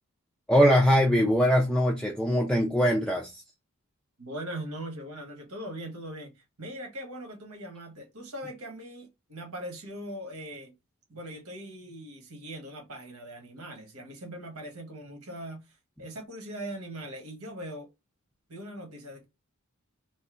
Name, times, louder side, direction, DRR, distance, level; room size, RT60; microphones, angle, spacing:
voice 1, 0.5-3.4, equal, 5° left, 0.4 m, -22 dB
voice 2, 4.2-10.7 11.1-17.9 18.5-19.2, right 1 dB, 75° right, 1.4 m, -40 dB
3.1 x 2.7 x 3.7 m
head